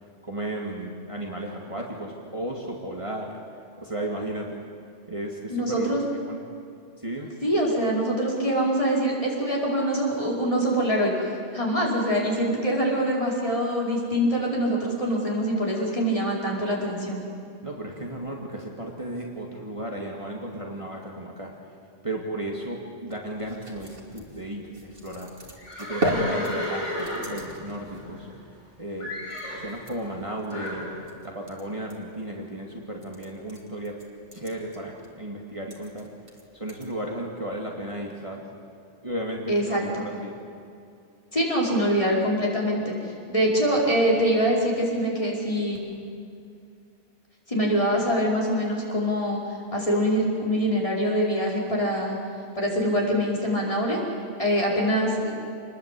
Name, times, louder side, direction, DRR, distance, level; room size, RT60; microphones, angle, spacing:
voice 1, 0.2-3.4 3.8-4.6 5.1-5.9 6.3-6.4 7.0-7.3 17.6-21.5 22.0-25.3 25.8-28.3 28.8-29.2 29.5-30.9 31.2-34.0 34.3-36.1 36.5-38.4 39.0-40.4, right 1 dB, 25° right, -1 dB, 2.3 m, -34 dB
voice 2, 5.5-6.0 7.4-17.2 39.5-40.1 41.3-45.8 47.5-49.4 49.7-52.2 52.6-54.0 54.4-55.4, equal, 25° left, -3 dB, 5.1 m, -24 dB
sound 1, 23.3-36.9, right 1 dB, 50° right, 3.1 m, -37 dB
Livestock farm animals working animals, 25.6-28.7 29.0-29.7 30.5-30.9, left 1 dB, 85° left, 6.7 m, -33 dB
27.5 x 20.5 x 8.5 m, 2.5 s
omnidirectional pair, 1.2 m